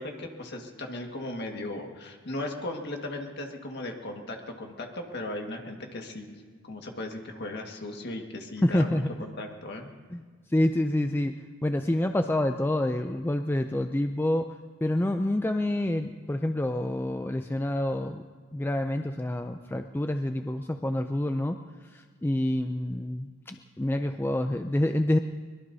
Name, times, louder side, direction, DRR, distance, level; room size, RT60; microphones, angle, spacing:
voice 1, 0.0-9.9, left 1 dB, 50° left, 2 dB, 1.7 m, -37 dB
voice 2, 8.6-9.1 10.1-10.2 10.5-11.4 11.6-14.5 14.8-18.2 18.5-25.2, left 1 dB, 10° left, 6 dB, 0.4 m, -27 dB
23.5 x 21.5 x 2.7 m, 1.5 s
head